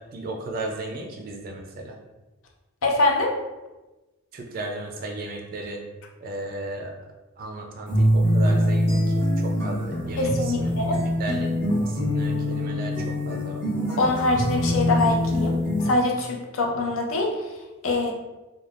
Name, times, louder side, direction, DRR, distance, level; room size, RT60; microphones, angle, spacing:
voice 1, 0.1-1.9 4.3-5.8 6.2-6.9 7.4-9.0 9.4-12.9 13.2-13.6, right 2 dB, 45° right, 1 dB, 0.3 m, -35 dB
voice 2, 2.8-3.4 10.2-11.0 14.0-15.6 15.8-17.6 17.8-18.1, left 2 dB, 70° left, 1 dB, 0.5 m, -24 dB
sound 1, 7.9-15.9, equal, 15° left, 1.2 m, -24 dB
3.3 x 2.2 x 2.4 m, 1.1 s
head